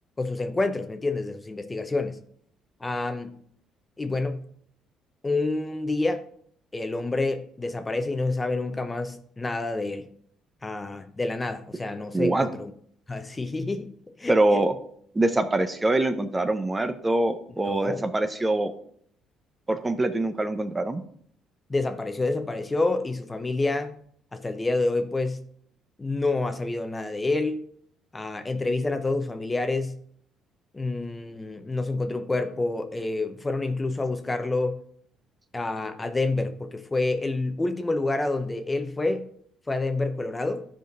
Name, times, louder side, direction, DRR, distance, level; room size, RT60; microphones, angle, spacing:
voice 1, 0.2-2.2 2.8-3.4 4.0-4.4 5.2-6.2 6.7-10.1 10.6-12.7 13.1-13.9 14.2-14.6 17.6-18.1 21.7-23.9 24.3-25.4 26.0-27.6 28.1-30.0 30.7-34.8 35.5-39.2 39.7-40.7, left 2 dB, 20° left, 8 dB, 0.8 m, -28 dB
voice 2, 12.1-12.5 14.3-14.7 15.1-18.7 19.7-21.0, right 2 dB, 20° right, 9 dB, 0.7 m, -24 dB
12.0 x 5.1 x 4.0 m, 0.63 s
cardioid pair, 90°, 0 cm